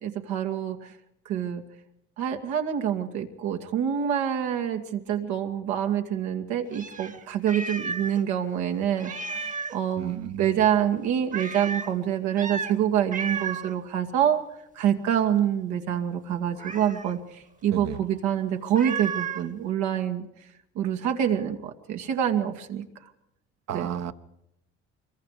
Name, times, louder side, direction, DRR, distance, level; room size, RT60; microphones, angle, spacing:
voice 1, 0.0-0.9 1.3-1.6 2.2-14.4 14.8-20.2 20.8-22.8 23.7-24.0, right 9 dB, 85° right, 4 dB, 2.3 m, -26 dB
Meow, 6.7-8.2 8.5-8.6 9.0-9.8 11.3-11.9 12.3-12.8 13.1-13.7 16.6-17.1 18.7-19.5, right 5 dB, 25° right, 1.3 m, -33 dB
voice 2, 10.0-10.6 17.7-18.0 23.7-24.1, right 10 dB, 65° right, 11 dB, 1.3 m, -33 dB
25.5 x 22.5 x 5.0 m, 0.81 s
supercardioid pair, 85°, 29 cm